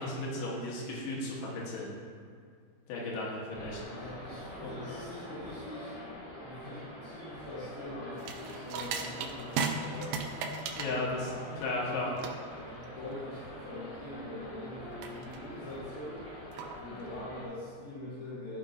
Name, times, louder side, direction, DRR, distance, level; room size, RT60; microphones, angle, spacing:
voice 1, 0.0-1.9 2.9-3.8 4.6-4.8 10.8-11.1 11.6-12.1, left 2 dB, 90° left, -4 dB, 3.3 m, -35 dB
sound 1, 3.5-17.4, equal, 40° left, 1.1 m, -45 dB
voice 2, 3.9-6.0 6.4-10.4 10.9-11.4 11.9-12.0 12.7-16.2 16.8-18.6, left 1 dB, 70° left, -10 dB, 3.1 m, -44 dB
sound 2, 8.2-17.2, right 5 dB, 85° right, 1.9 m, -38 dB
13.5 x 4.9 x 2.6 m, 2.1 s
omnidirectional pair, 4.6 m